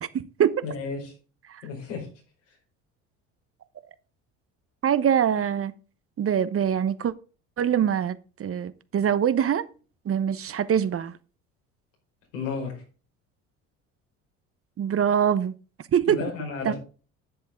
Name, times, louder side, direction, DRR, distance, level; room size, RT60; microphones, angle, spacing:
voice 1, 0.0-0.6 1.5-1.6 4.8-5.7 6.2-7.1 7.6-9.6 10.0-11.1 14.8-15.5 15.9-16.2 16.6-16.7, right 8 dB, 40° right, 1.0 m, -24 dB
voice 2, 0.6-1.1 1.6-2.1 2.5-2.6 12.3-12.8 16.1-16.7, left 5 dB, 85° left, 5.1 m, -33 dB
11.0 x 7.8 x 3.8 m
hypercardioid pair, 70°, 36 cm